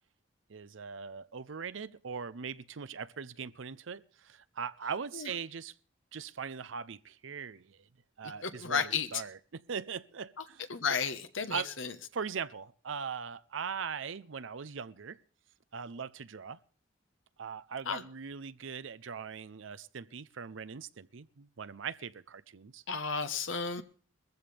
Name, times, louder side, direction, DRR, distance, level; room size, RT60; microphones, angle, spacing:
voice 1, 0.5-5.7 6.1-7.9 8.2-10.6 11.5-11.7 12.1-15.2 15.7-16.6 17.4-22.8, right 6 dB, 80° right, 0.6 m, -40 dB
voice 2, 8.2-9.2 10.4-10.5 10.7-11.9 17.8-18.0 22.9-23.8, left 5 dB, 80° left, 1.3 m, -33 dB
20.0 x 14.5 x 3.4 m
head